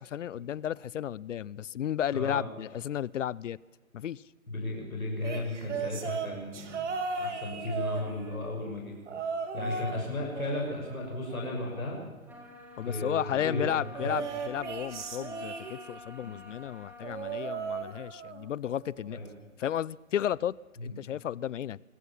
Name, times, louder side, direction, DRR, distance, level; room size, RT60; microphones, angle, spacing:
voice 1, 0.0-3.6 3.9-4.2 9.5-9.7 12.8-19.2 19.6-20.5 20.8-21.8, left 10 dB, 60° left, 0.6 m, -33 dB
voice 2, 2.1-2.4 4.5-6.9 7.2-9.0 9.5-12.0 12.8-14.2 16.2-16.3 19.1-19.3 20.8-20.9, left 2 dB, 90° left, 6.5 m, -35 dB
sound 1, 5.2-8.5 9.1-10.1 10.3-11.9 13.9-16.1 17.0-18.5 18.8-19.2 20.3-20.4, right 5 dB, 60° right, 3.0 m, -37 dB
sound 2, 12.3-17.8, left 2 dB, 5° right, 3.8 m, -48 dB
24.5 x 14.5 x 7.3 m
figure-of-eight pair, 130°, 41 cm